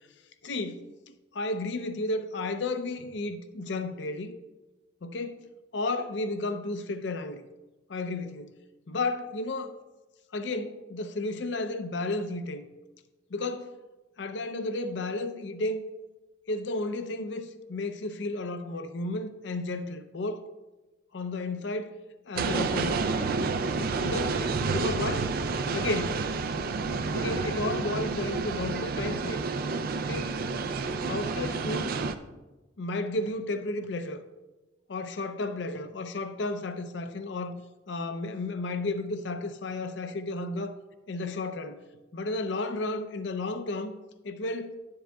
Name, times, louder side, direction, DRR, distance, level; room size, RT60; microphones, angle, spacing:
voice 1, 0.4-4.3 5.0-5.4 5.7-7.4 7.9-8.5 8.9-9.7 10.3-12.7 13.3-13.7 14.2-15.8 16.5-20.4 21.1-21.9 22.3-23.3 24.0-25.3 25.7-26.3 27.1-29.4 30.0-30.4 31.0-31.9 32.8-34.2 34.9-37.6 37.9-40.8 41.1-41.8 42.1-43.9 44.2-44.7, left 2 dB, 65° left, 0.5 m, -33 dB
sound 1, 22.3-32.1, right 4 dB, 50° right, 0.4 m, -29 dB
11.0 x 7.6 x 2.3 m
head